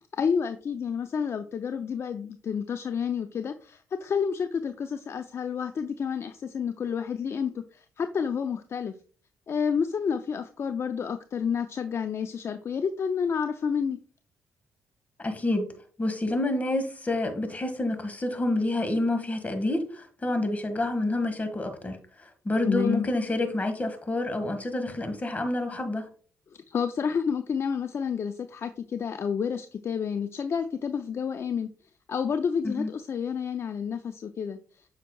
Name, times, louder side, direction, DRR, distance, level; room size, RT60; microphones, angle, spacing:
voice 1, 0.2-8.9 9.5-14.0 22.6-23.1 26.7-31.7 32.1-34.6, left 6 dB, 50° left, 0.5 m, -29 dB
voice 2, 15.2-15.7 16.0-26.1 32.6-32.9, left 2 dB, 25° left, 1.7 m, -28 dB
8.2 x 5.8 x 2.3 m
supercardioid pair, 65°, 6 cm